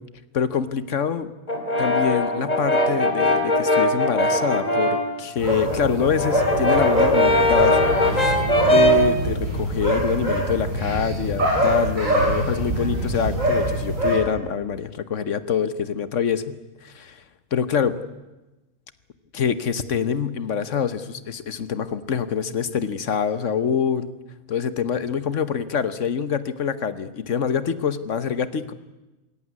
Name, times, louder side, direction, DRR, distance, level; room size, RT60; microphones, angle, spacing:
voice 1, 0.3-1.3 1.8-7.8 8.1-16.6 16.8-17.2 17.5-17.9 19.3-24.1 24.5-28.7, left 7 dB, 55° left, 14 dB, 1.3 m, -25 dB
Brass instrument, 1.5-5.1 5.5-9.1, left 1 dB, 25° left, 2.5 m, -21 dB
sound 1, 5.4-14.1, right 1 dB, 55° right, 7.6 m, -24 dB
21.5 x 17.0 x 9.6 m, 1.1 s
omnidirectional pair, 1.6 m